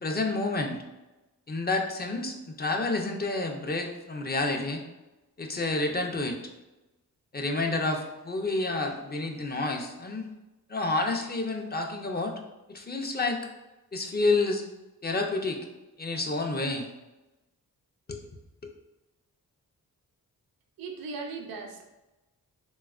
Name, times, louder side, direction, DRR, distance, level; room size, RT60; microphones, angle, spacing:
voice 1, 0.0-0.8 1.5-4.8 5.4-6.4 7.3-10.3 10.7-12.3 12.7-13.4 13.9-14.6 15.0-15.6 16.0-16.9 18.1-18.2 18.6-18.7, left 2 dB, 25° left, 2 dB, 0.5 m, -29 dB
voice 2, 20.8-21.8, right 4 dB, 70° right, 2 dB, 0.5 m, -38 dB
3.4 x 2.2 x 2.3 m, 1.0 s
cardioid pair, 55°, 36 cm